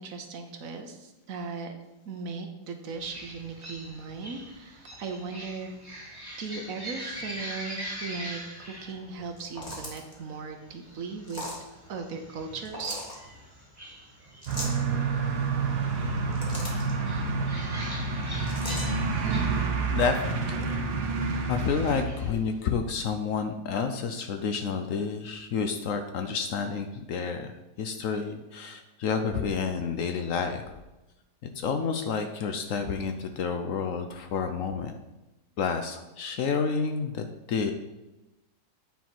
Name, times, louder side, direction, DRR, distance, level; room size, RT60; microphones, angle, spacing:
voice 1, 0.0-1.7 2.1-6.0 6.4-8.4 8.7-11.6 11.9-13.0, right 4 dB, 65° right, 5 dB, 1.1 m, -38 dB
sound 1, 2.9-22.6, equal, 15° right, 1.5 m, -44 dB
sound 2, 9.3-10.1 11.2-11.6 12.6-13.2 14.4-14.8 16.1-16.9 18.5-18.9, left 1 dB, 25° left, 1.6 m, -38 dB
sound 3, 14.5-22.1, right 4 dB, 85° right, 1.5 m, -28 dB
voice 2, 19.9-20.8 21.5-30.7 31.6-34.9 35.6-37.7, left 5 dB, 65° left, 6 dB, 0.9 m, -30 dB
9.2 x 4.5 x 4.4 m, 1.0 s
omnidirectional pair, 1.7 m